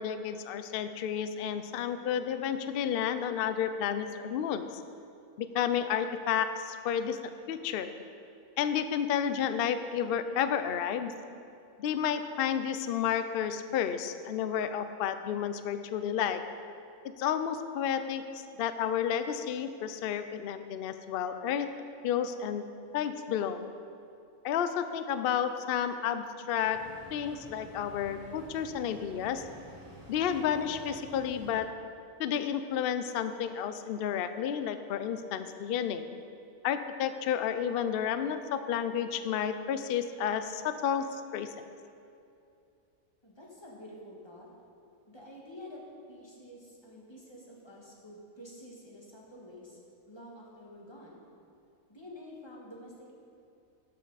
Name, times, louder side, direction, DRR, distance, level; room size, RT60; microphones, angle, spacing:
voice 1, 0.0-4.7 5.4-7.9 8.6-11.2 11.8-16.5 17.2-21.7 22.0-22.7 22.9-23.6 24.4-29.4 30.1-31.8 32.2-36.1 36.6-41.5, left 8 dB, 75° left, 10 dB, 0.5 m, -31 dB
sound 1, 26.6-31.6, equal, 15° right, 1.7 m, -50 dB
voice 2, 43.2-44.5 45.1-49.8 50.1-51.3 51.9-53.1, left 1 dB, 20° left, -3 dB, 1.6 m, -49 dB
12.5 x 7.6 x 4.0 m, 2.6 s
omnidirectional pair, 1.6 m